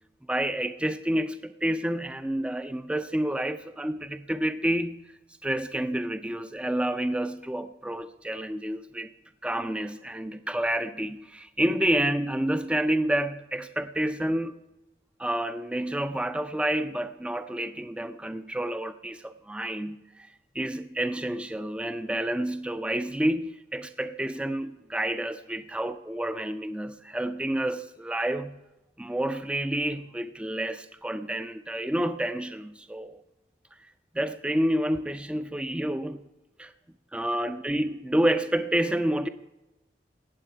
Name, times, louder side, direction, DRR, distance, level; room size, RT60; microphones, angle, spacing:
voice 1, 0.3-5.0 5.4-9.1 9.4-14.6 15.2-20.3 20.5-28.7 29.0-33.2 34.1-36.3 36.6-36.7 37.1-39.3, right 1 dB, 5° right, 10 dB, 0.3 m, -29 dB
18.0 x 7.6 x 4.6 m, 1.0 s
head